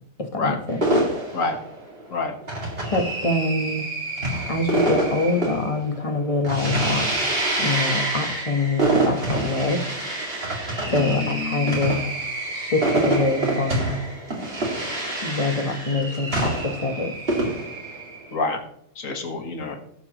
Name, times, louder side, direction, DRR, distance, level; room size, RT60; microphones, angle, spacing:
voice 1, 0.2-0.8 2.9-3.9 4.5-7.1 7.6-9.8 10.9-12.0 12.5-14.0 15.2-17.1, left 2 dB, 25° left, 4 dB, 1.2 m, -25 dB
sound 1, 0.8-18.3, right 2 dB, 45° right, 2.6 m, -26 dB
voice 2, 10.9-11.8 18.3-18.6 19.0-19.8, left 3 dB, 80° left, 4 dB, 1.9 m, -27 dB
18.0 x 6.9 x 3.0 m, 0.70 s
omnidirectional pair, 1.4 m